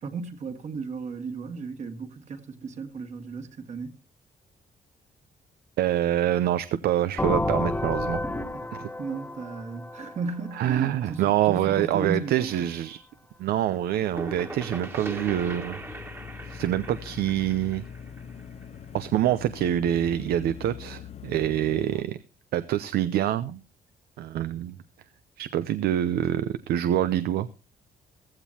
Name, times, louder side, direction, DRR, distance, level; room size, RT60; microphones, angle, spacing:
voice 1, 0.0-3.9 8.5-12.7, right 4 dB, 50° right, 2.0 m, -35 dB
voice 2, 5.8-8.3 8.7-8.9 10.5-13.0 13.4-15.8 16.4-17.8 18.9-22.2 22.5-23.6 24.2-24.8 25.4-27.5, right 12 dB, 90° right, 0.7 m, -26 dB
sound 1, 7.2-10.9, left 1 dB, 10° left, 1.1 m, -30 dB
sound 2, 13.7-19.3, right 2 dB, 15° right, 1.6 m, -40 dB
sound 3, 14.2-22.0, left 8 dB, 45° left, 0.6 m, -43 dB
15.5 x 14.5 x 2.9 m
cardioid pair, 140°, 16 cm